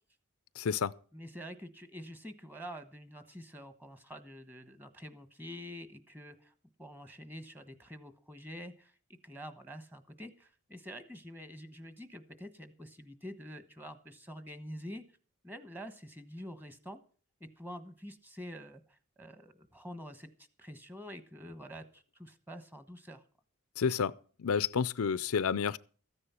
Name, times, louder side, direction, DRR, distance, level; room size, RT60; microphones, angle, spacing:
voice 1, 0.6-0.9 23.8-24.1 24.4-25.8, left 6 dB, 85° left, 0.5 m, -30 dB
voice 2, 1.1-6.5 6.8-8.9 9.2-15.0 15.4-17.0 17.4-20.3 20.6-23.2, equal, 10° right, 1.2 m, -47 dB
14.5 x 9.8 x 5.7 m
head